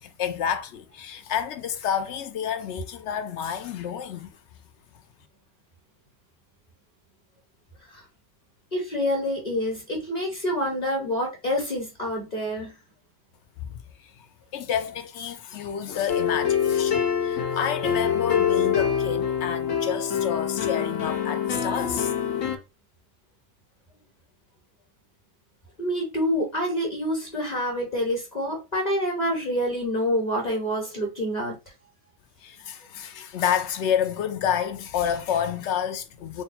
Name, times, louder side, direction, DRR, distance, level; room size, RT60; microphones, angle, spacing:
voice 1, 0.0-4.3 13.6-13.7 14.2-14.3 14.5-22.2 32.4-36.4, left 8 dB, 70° left, 0.8 m, -29 dB
voice 2, 8.7-12.8 25.8-31.5, equal, 35° left, 1.4 m, -27 dB
sound 1, 16.1-22.6, left 8 dB, 90° left, 1.1 m, -25 dB
3.5 x 2.2 x 4.2 m
omnidirectional pair, 1.3 m